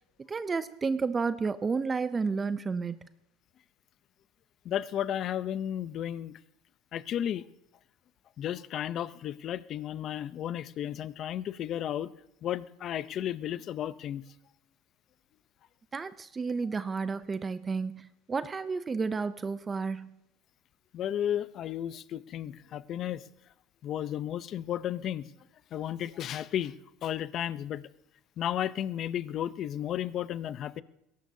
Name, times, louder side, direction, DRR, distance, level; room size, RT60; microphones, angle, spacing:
voice 1, 0.3-3.0 15.9-20.1, right 4 dB, 20° right, 13 dB, 0.5 m, -31 dB
voice 2, 4.6-6.3 6.9-7.5 8.4-12.1 12.4-14.2 20.9-23.2 23.8-25.3 25.7-26.7 27.0-27.8 28.4-30.8, left 10 dB, 40° left, 16 dB, 0.6 m, -33 dB
21.0 x 18.0 x 2.8 m, 0.83 s
cardioid pair, 140°, 0 cm